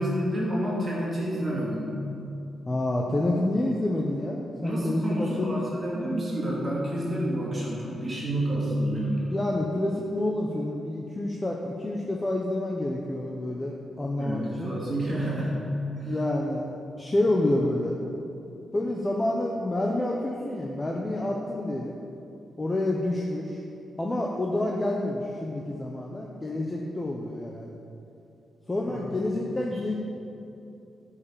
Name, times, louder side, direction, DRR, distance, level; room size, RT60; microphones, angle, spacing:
voice 1, 0.0-1.9 4.6-9.3 14.2-16.1 28.9-29.0 29.7-29.8, equal, 30° right, -6 dB, 2.8 m, -29 dB
voice 2, 2.7-5.6 9.3-14.8 16.1-16.7 17.0-18.0 18.7-22.0 22.6-23.6 24.0-27.8 28.7-29.9, left 1 dB, 15° left, -1 dB, 0.8 m, -28 dB
12.5 x 5.7 x 7.0 m, 2.8 s
wide cardioid pair, 155°, 0 cm